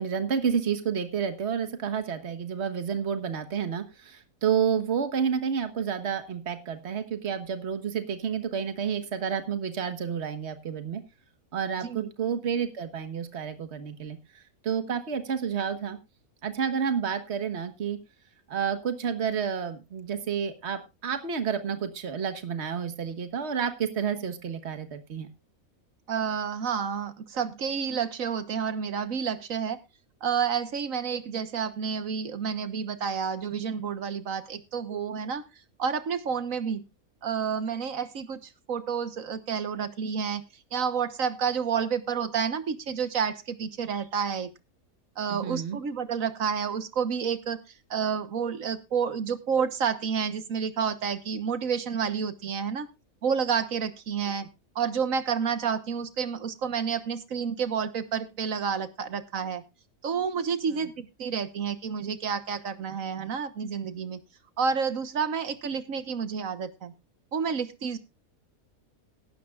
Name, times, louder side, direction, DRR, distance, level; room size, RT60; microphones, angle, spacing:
voice 1, 0.0-11.0 11.5-14.2 14.6-16.0 16.4-18.0 18.5-25.3 45.3-45.8, right 7 dB, 50° right, 9 dB, 1.6 m, -30 dB
voice 2, 11.8-12.1 26.1-29.8 30.2-35.4 35.8-36.8 37.2-40.4 40.7-44.5 45.2-47.6 47.9-52.9 53.2-54.5 54.7-59.6 60.0-60.9 61.2-64.2 64.6-66.9 67.3-68.0, right 6 dB, 65° right, 12 dB, 1.5 m, -29 dB
17.0 x 12.0 x 2.4 m, 0.26 s
omnidirectional pair, 1.5 m